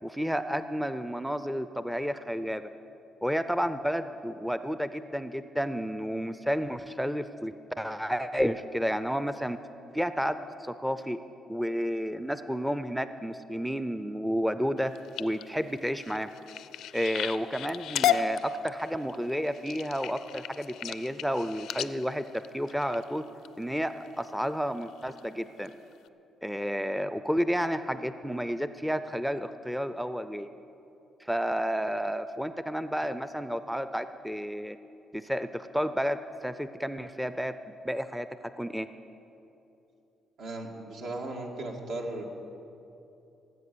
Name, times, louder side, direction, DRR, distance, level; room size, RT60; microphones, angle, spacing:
voice 1, 0.0-2.6 3.2-9.6 9.9-11.2 11.5-14.9 15.2-16.3 16.9-23.2 23.6-25.7 26.4-30.5 31.2-34.8 35.1-36.2 36.4-37.5 37.8-38.3 38.6-38.9, equal, ahead, 11 dB, 0.4 m, -31 dB
sound 1, 14.8-23.5 24.1-24.4 24.8-25.2 25.6-25.7 26.1-26.2, left 9 dB, 85° left, 0.4 m, -34 dB
voice 2, 40.4-42.2, right 2 dB, 75° right, 1 dB, 2.1 m, -36 dB
18.0 x 8.0 x 6.9 m, 2.9 s
cardioid pair, 90°, 0 cm